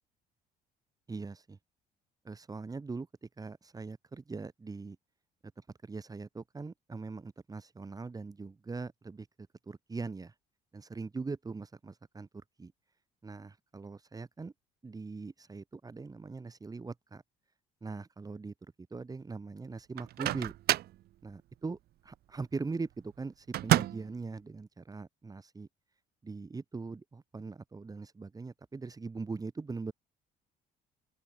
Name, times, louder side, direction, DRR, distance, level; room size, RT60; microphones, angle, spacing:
voice 1, 1.1-1.6 2.2-5.0 5.6-9.3 9.7-10.3 10.7-12.3 12.6-12.7 13.2-14.5 14.8-17.2 17.8-18.5 18.9-20.5 21.2-25.7 26.2-29.9, right 4 dB, 20° right, 3.0 m, -41 dB
Microwave oven, 20.0-21.0 23.5-24.2, right 14 dB, 65° right, 1.0 m, -29 dB
open air
cardioid pair, 110°, 17 cm